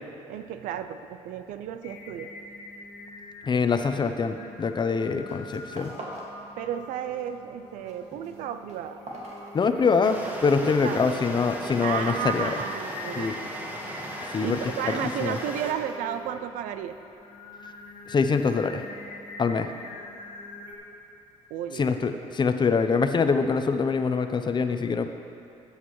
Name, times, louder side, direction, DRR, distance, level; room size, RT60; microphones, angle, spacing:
voice 1, 0.3-2.3 6.6-9.0 10.6-11.0 11.8-13.4 14.4-17.0 21.5-21.9, right 9 dB, 85° right, 10 dB, 0.5 m, -33 dB
Singing, 1.8-20.7, left 3 dB, 80° left, 1.5 m, -43 dB
voice 2, 3.4-5.9 9.5-12.5 13.2-13.3 14.3-14.6 14.8-15.4 18.1-18.8 19.4-19.7 21.8-25.1, left 5 dB, 35° left, 8 dB, 0.6 m, -24 dB
sound 1, 4.6-4.9 5.2-6.4 6.7-7.3 7.6-10.1, right 2 dB, 60° right, 2.0 m, -43 dB
Stream, 10.0-15.7, equal, 15° right, 1.4 m, -38 dB
14.0 x 8.2 x 3.1 m, 2.8 s
cardioid pair, 80°, 13 cm